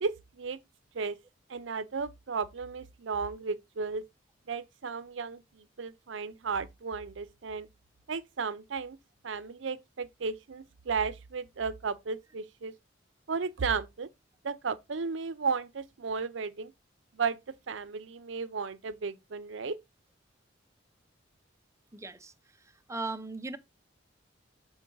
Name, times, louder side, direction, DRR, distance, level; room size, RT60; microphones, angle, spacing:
voice 1, 0.0-0.6 0.9-1.2 1.5-4.0 4.5-5.4 5.8-7.7 8.1-9.0 9.2-12.7 13.3-14.1 14.4-16.7 17.1-17.4 17.7-19.8, right 5 dB, 75° right, 0.6 m, -34 dB
voice 2, 21.9-23.6, right 3 dB, 15° right, 0.6 m, -39 dB
7.1 x 4.6 x 3.8 m
head